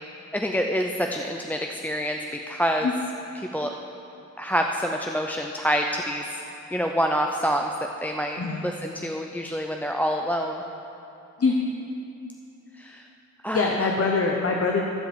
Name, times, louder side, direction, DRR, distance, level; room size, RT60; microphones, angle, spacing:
voice 1, 0.3-2.2 2.5-2.9 3.4-3.7 4.4-6.2 6.7-10.6 12.8-13.0 13.4-13.9, equal, 5° left, 2 dB, 0.4 m, -27 dB
voice 2, 13.5-14.8, left 4 dB, 50° left, 0 dB, 0.9 m, -23 dB
13.5 x 4.8 x 7.4 m, 2.8 s
wide cardioid pair, 100°, 31 cm